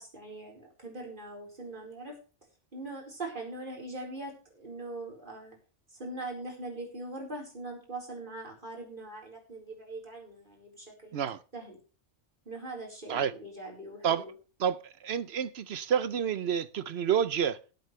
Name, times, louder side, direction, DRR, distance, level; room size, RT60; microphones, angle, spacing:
voice 1, 0.0-2.2 2.7-5.6 5.9-11.2 11.5-11.8 12.4-14.3, right 2 dB, 45° right, 4.6 m, -41 dB
voice 2, 14.6-17.6, right 8 dB, 65° right, 0.9 m, -29 dB
18.0 x 8.3 x 3.2 m
omnidirectional pair, 1.2 m